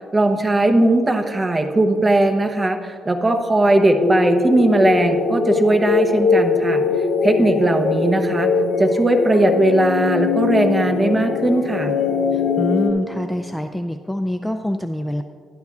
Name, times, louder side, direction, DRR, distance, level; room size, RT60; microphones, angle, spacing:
voice 1, 0.1-6.8 7.2-8.5 8.8-11.9, right 2 dB, 20° right, 5 dB, 0.9 m, -18 dB
sound 1, 4.0-12.9, left 4 dB, 80° left, 0.8 m, -21 dB
voice 2, 12.3-15.2, left 1 dB, 5° left, 7 dB, 0.3 m, -25 dB
12.5 x 10.5 x 2.4 m, 2.2 s
cardioid pair, 90°, 0 cm